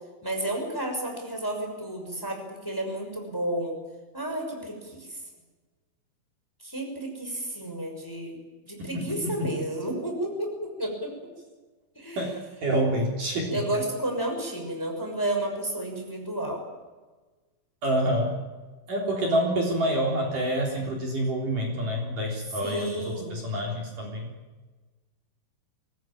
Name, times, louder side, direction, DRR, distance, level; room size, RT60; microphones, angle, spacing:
voice 1, 0.2-3.8 4.1-5.2 6.6-8.4 8.7-11.1 11.9-12.3 12.7-12.8 13.5-16.6 22.6-23.4, right 1 dB, 5° left, 3 dB, 5.6 m, -31 dB
voice 2, 12.6-13.6 17.8-18.3 18.9-24.3, right 1 dB, 45° right, 0 dB, 4.9 m, -27 dB
24.5 x 19.5 x 8.9 m, 1.3 s
omnidirectional pair, 5.4 m